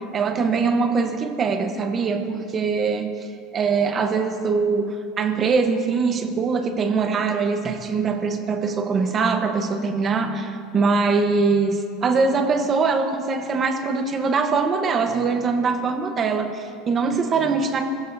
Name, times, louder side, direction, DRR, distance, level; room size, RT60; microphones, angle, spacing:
voice 1, 0.0-3.1 3.5-17.9, right 4 dB, 20° right, 6 dB, 1.0 m, -22 dB
25.5 x 15.5 x 2.7 m, 2.4 s
cardioid pair, 175°, 0 cm